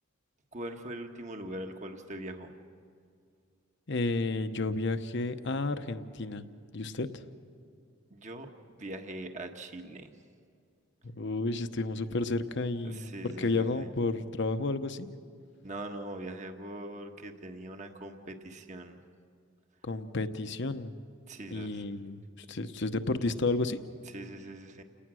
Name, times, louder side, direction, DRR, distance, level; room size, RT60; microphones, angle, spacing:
voice 1, 0.5-2.5 8.1-8.5 8.8-10.1 12.8-13.9 15.6-19.0 21.3-21.8 22.6-22.7 24.1-24.8, right 1 dB, 35° right, 5 dB, 1.4 m, -42 dB
voice 2, 3.9-6.4 6.7-7.2 11.0-15.1 19.8-21.0 21.5-22.2 22.5-23.8, left 3 dB, 60° left, 10 dB, 0.9 m, -31 dB
29.5 x 18.5 x 6.3 m, 2.2 s
head